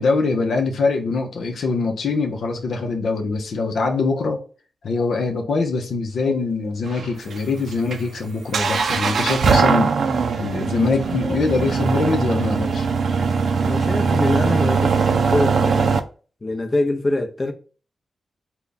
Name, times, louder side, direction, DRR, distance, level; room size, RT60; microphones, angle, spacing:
voice 1, 0.0-4.4 4.8-9.9 10.3-12.9, left 4 dB, 85° left, 0.7 m, -23 dB
sound 1, 6.9-16.0, right 5 dB, 75° right, 0.4 m, -21 dB
voice 2, 13.6-16.0 16.4-17.5, left 2 dB, 30° left, 0.7 m, -24 dB
3.4 x 2.2 x 4.0 m
cardioid pair, 70°, 0 cm